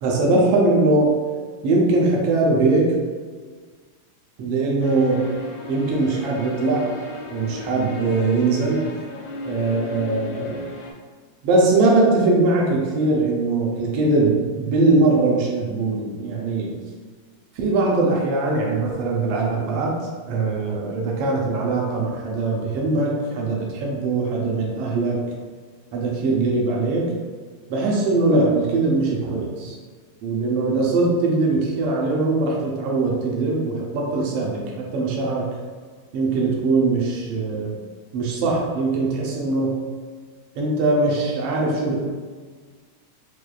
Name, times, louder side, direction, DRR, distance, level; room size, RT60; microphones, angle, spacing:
voice 1, 0.0-1.2 1.6-3.0 4.4-5.3 5.7-6.9 7.3-8.9 9.5-10.6 11.4-16.8 17.6-20.0 20.3-25.2 25.9-27.1 27.7-29.8 30.2-35.5 36.1-37.8 38.1-39.8 40.6-42.0, right 3 dB, 80° right, -2 dB, 1.4 m, -21 dB
sound 1, 4.8-10.9, left 2 dB, 80° left, 2.0 m, -35 dB
6.0 x 2.3 x 2.4 m, 1.5 s
omnidirectional pair, 3.3 m